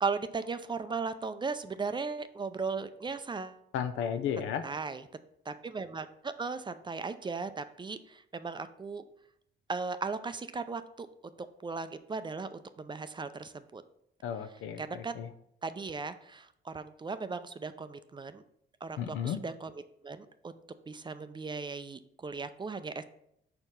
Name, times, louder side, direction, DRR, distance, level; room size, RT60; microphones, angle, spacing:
voice 1, 0.0-3.6 4.6-5.0 5.5-9.0 9.7-11.1 11.4-13.8 14.8-15.2 15.6-18.4 18.8-19.7 20.0-20.6 20.9-23.0, right 4 dB, 25° right, 11 dB, 0.4 m, -37 dB
voice 2, 3.7-4.6 14.2-15.3 19.0-19.4, left 8 dB, 85° left, 10 dB, 0.6 m, -34 dB
4.6 x 4.3 x 5.2 m, 0.73 s
cardioid pair, 90°, 20 cm